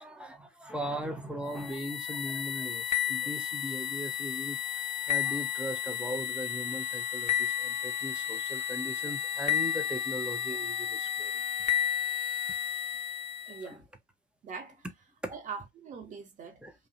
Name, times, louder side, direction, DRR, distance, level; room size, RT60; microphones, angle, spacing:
voice 1, 0.0-4.6 5.1-11.3 13.7-13.8 15.2-15.4 16.6-16.7, right 1 dB, 5° right, 0.3 m, -39 dB
sound 1, 1.5-13.6, left 10 dB, 25° left, 0.7 m, -32 dB
voice 2, 13.5-13.9 14.4-14.8 15.3-16.6, right 5 dB, 25° right, 0.8 m, -42 dB
2.7 x 2.0 x 2.6 m
hypercardioid pair, 95°, 32 cm